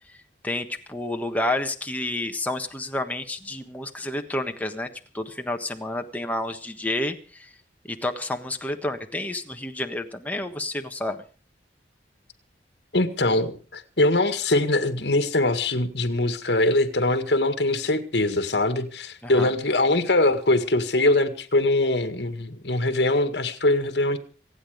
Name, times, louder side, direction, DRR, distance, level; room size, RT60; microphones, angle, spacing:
voice 1, 0.4-4.9 5.1-7.5 7.9-11.2 19.2-19.5, left 1 dB, 10° left, 4 dB, 1.3 m, -30 dB
voice 2, 12.9-24.2, left 2 dB, 65° left, 9 dB, 1.9 m, -22 dB
25.5 x 9.0 x 5.1 m, 0.38 s
head